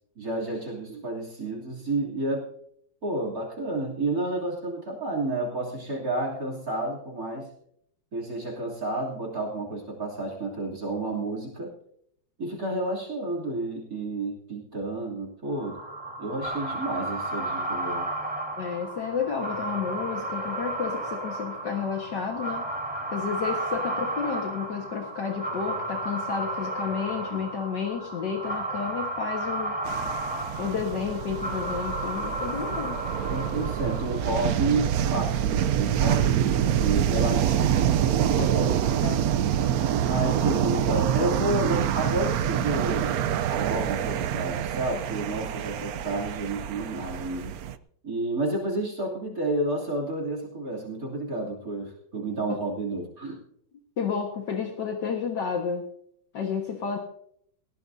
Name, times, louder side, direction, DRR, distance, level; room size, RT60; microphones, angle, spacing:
voice 1, 0.2-2.5 3.0-7.5 8.1-11.7 12.4-15.8 16.2-18.1 27.3-27.4 33.3-38.8 40.1-43.1 43.5-47.6 48.0-53.4, right 2 dB, 45° right, 1 dB, 3.3 m, -30 dB
sound 1, 15.5-34.4, right 1 dB, 5° right, 3.7 m, -33 dB
voice 2, 18.6-22.7 23.1-29.8 30.6-33.0 38.4-38.5 39.0-39.3 52.5-52.6 54.0-55.9 56.3-57.0, left 6 dB, 65° left, 2 dB, 2.0 m, -31 dB
sound 2, 29.8-47.7, right 10 dB, 65° right, 0.9 m, -26 dB
19.5 x 16.0 x 2.7 m, 0.69 s
omnidirectional pair, 2.1 m